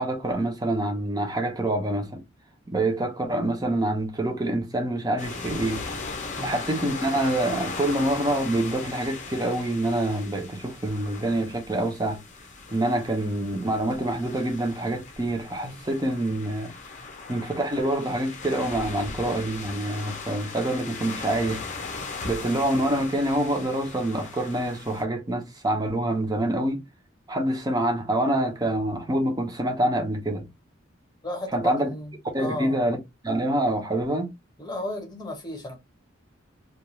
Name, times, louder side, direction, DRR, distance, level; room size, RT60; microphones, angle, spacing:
voice 1, 0.0-2.2 2.7-5.8 6.4-12.2 12.7-16.7 17.3-21.6 22.2-26.8 27.3-30.5 31.5-31.9 32.3-33.0 33.2-34.3, right 1 dB, 20° right, 0.7 m, -26 dB
sound 1, 5.2-25.0, left 4 dB, 40° left, 0.6 m, -38 dB
voice 2, 31.2-32.9 34.6-35.8, left 1 dB, 20° left, 1.0 m, -34 dB
2.4 x 2.3 x 2.9 m
head